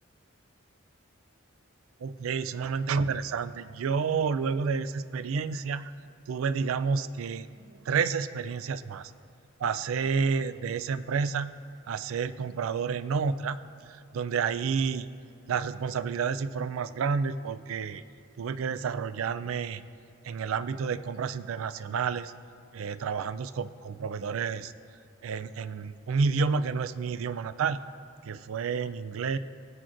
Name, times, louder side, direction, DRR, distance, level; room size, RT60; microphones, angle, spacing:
voice 1, 2.0-5.9 6.3-9.1 9.6-11.5 11.9-13.6 13.9-15.1 15.5-18.0 18.4-19.8 20.2-22.3 22.7-24.7 25.2-27.8 28.3-29.4, right 5 dB, 80° right, 14 dB, 0.4 m, -30 dB
21.0 x 7.5 x 2.5 m, 2.6 s
head